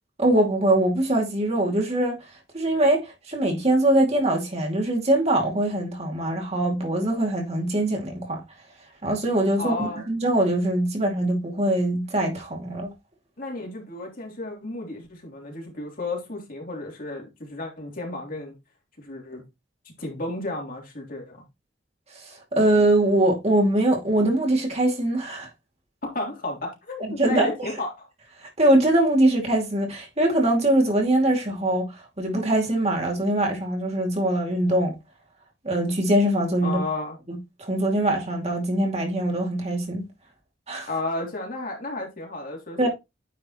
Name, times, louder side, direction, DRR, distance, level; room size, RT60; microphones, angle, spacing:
voice 1, 0.2-2.2 2.5-8.4 9.0-9.7 10.1-12.9 22.2-25.5 27.2-27.7 28.4-34.9 35.6-36.8 37.3-40.1 40.7-40.9 42.8-42.9, right 1 dB, 35° right, 2.5 m, -22 dB
voice 2, 9.6-10.0 13.4-18.5 19.0-19.4 20.0-21.4 26.0-28.1 36.6-37.2 40.9-42.9, left 2 dB, 50° left, 3.2 m, -33 dB
9.5 x 5.3 x 3.1 m
head